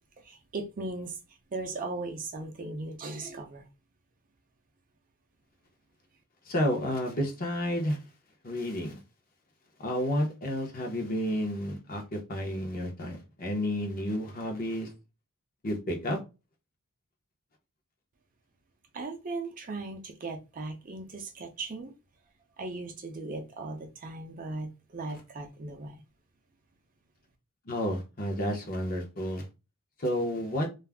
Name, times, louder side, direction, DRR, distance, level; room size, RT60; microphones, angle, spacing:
voice 1, 0.2-1.2 1.5-3.7 18.9-21.9 22.6-26.0, right 3 dB, 40° right, 4 dB, 0.5 m, -38 dB
voice 2, 6.5-8.0 8.4-9.0 9.8-14.9 15.6-16.2 27.7-29.5 30.0-30.7, equal, 40° left, 1 dB, 0.7 m, -31 dB
2.4 x 2.0 x 3.4 m, 0.28 s
head